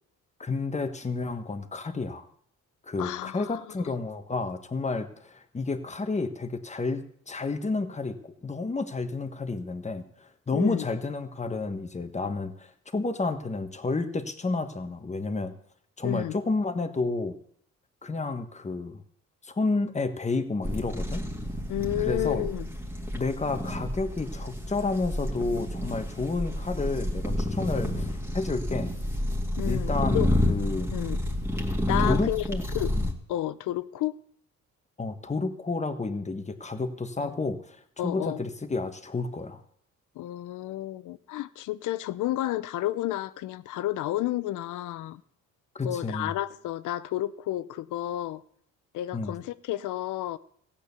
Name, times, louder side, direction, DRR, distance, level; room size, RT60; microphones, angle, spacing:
voice 1, 0.4-2.3 2.8-15.5 16.0-17.3 18.0-19.0 19.4-21.2 22.0-22.5 23.1-28.1 28.3-28.9 29.6-31.0 32.0-32.6 33.0-33.1 35.0-39.6 45.7-46.3 49.1-49.3, left 3 dB, 25° left, 1.4 m, -30 dB
voice 2, 3.0-3.6 10.5-10.8 16.0-16.4 21.7-22.7 29.6-30.3 30.9-31.2 31.9-32.4 32.7-33.0 33.3-34.2 37.2-37.3 38.0-38.4 40.2-45.2 45.8-48.4 48.9-50.4, left 14 dB, 80° left, 0.7 m, -31 dB
sound 1, 20.6-33.1, left 1 dB, 10° right, 2.2 m, -30 dB
15.0 x 8.8 x 7.0 m
cardioid pair, 90°, 30 cm